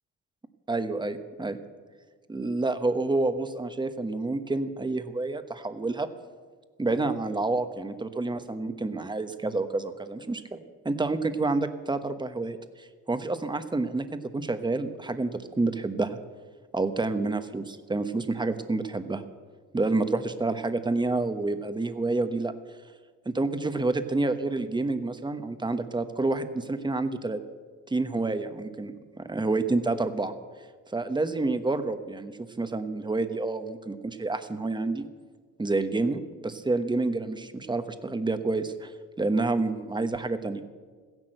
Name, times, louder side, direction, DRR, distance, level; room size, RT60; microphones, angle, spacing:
voice 1, 0.7-1.6 2.3-6.1 6.8-10.6 10.8-16.2 16.7-19.2 19.7-22.5 23.2-27.4 27.9-28.9 29.2-30.3 30.9-32.3 32.6-35.1 35.6-40.6, right 3 dB, 15° right, 9 dB, 1.1 m, -28 dB
15.5 x 11.0 x 7.8 m, 1.5 s
cardioid pair, 105°, 31 cm